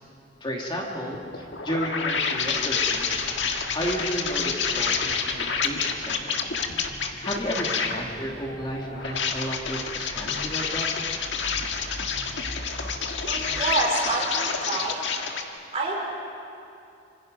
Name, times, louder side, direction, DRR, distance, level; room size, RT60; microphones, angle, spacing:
voice 1, 0.4-3.1 3.7-6.4 7.0-10.9, equal, 25° left, -1 dB, 2.2 m, -32 dB
sound 1, 1.1-8.1 8.9-15.4, left 6 dB, 80° left, 1.6 m, -28 dB
sound 2, 2.3-13.6, equal, 50° left, 7.9 m, -43 dB
voice 2, 13.2-15.0 15.7-16.0, right 3 dB, 35° right, -2 dB, 4.9 m, -27 dB
26.5 x 26.0 x 5.3 m, 2.6 s
head